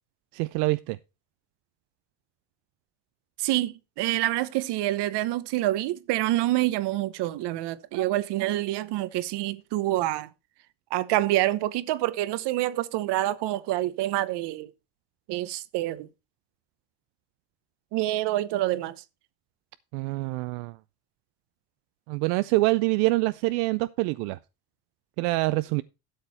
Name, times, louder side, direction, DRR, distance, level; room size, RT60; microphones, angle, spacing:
voice 1, 0.3-1.0 19.9-20.8 22.1-24.4 25.2-25.8, right 21 dB, 85° right, 0.5 m, -25 dB
voice 2, 3.4-10.3 10.9-14.7 15.3-16.1 17.9-18.9, right 15 dB, 65° right, 1.0 m, -27 dB
12.5 x 6.7 x 4.1 m
supercardioid pair, 100°, 44 cm